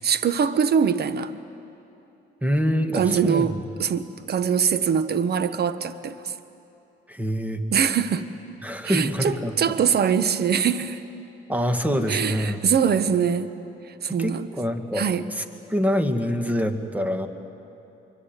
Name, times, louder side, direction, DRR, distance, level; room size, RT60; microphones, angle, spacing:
voice 1, 0.0-1.3 2.9-6.3 7.7-8.3 8.8-11.0 12.1-13.5 14.0-14.5 14.9-15.3, right 7 dB, 55° right, 12 dB, 1.1 m, -23 dB
voice 2, 2.4-3.6 7.1-7.6 8.6-9.5 11.5-12.6 14.2-15.4 15.7-17.3, equal, 5° right, 7 dB, 2.0 m, -25 dB
24.5 x 24.0 x 9.2 m, 2.9 s
cardioid pair, 90°, 20 cm